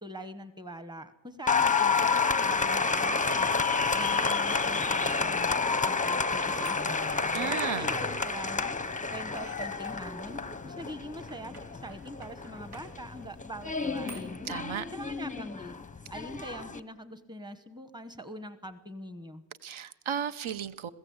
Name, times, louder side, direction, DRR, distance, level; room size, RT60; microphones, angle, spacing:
voice 1, 0.0-3.6 3.9-8.8 9.1-14.4 14.9-15.7 16.1-19.5, equal, 10° right, 11 dB, 1.1 m, -43 dB
Applause, 1.5-16.8, left 4 dB, 15° left, 0.6 m, -29 dB
sound 1, 5.1-14.2, right 3 dB, 85° right, 3.5 m, -53 dB
Wind instrument woodwind instrument, 5.3-9.2, right 10 dB, 50° right, 1.7 m, -55 dB
voice 2, 7.3-7.9 14.5-14.9 19.6-20.9, right 8 dB, 70° right, 14 dB, 0.9 m, -34 dB
21.5 x 16.0 x 8.0 m, 1.1 s
wide cardioid pair, 170°, 49 cm